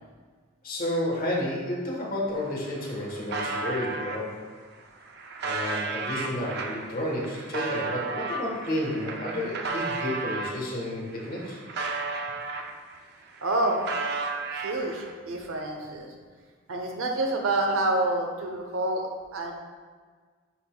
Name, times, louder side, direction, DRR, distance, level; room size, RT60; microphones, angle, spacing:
voice 1, 0.6-4.4 5.4-11.6, left 1 dB, 45° left, -3 dB, 1.3 m, -31 dB
sound 1, 2.3-2.4 2.6-4.2 4.8-10.6 11.1-13.0 13.3-15.1, right 3 dB, 50° right, 0.5 m, -33 dB
voice 2, 13.4-13.8 14.5-16.2 16.7-19.5, right 2 dB, 80° right, 3 dB, 0.8 m, -28 dB
10.0 x 4.0 x 2.3 m, 1.5 s
head